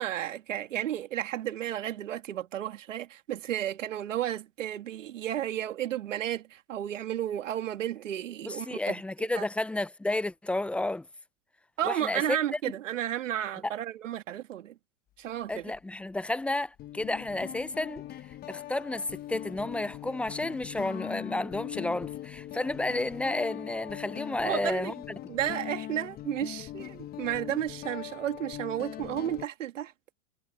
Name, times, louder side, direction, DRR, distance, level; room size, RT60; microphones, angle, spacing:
voice 1, 0.0-9.0 9.3-9.5 11.8-14.7 15.2-15.7 24.4-24.9 25.3-29.9, right 11 dB, 80° right, 2.4 m, -33 dB
voice 2, 8.4-11.1 11.8-12.4 15.5-18.0 18.5-24.9, left 2 dB, 5° left, 0.5 m, -31 dB
Guitar, 15.5-15.8 16.8-29.5, left 13 dB, 25° left, 1.0 m, -41 dB
hypercardioid pair, 130°, 37 cm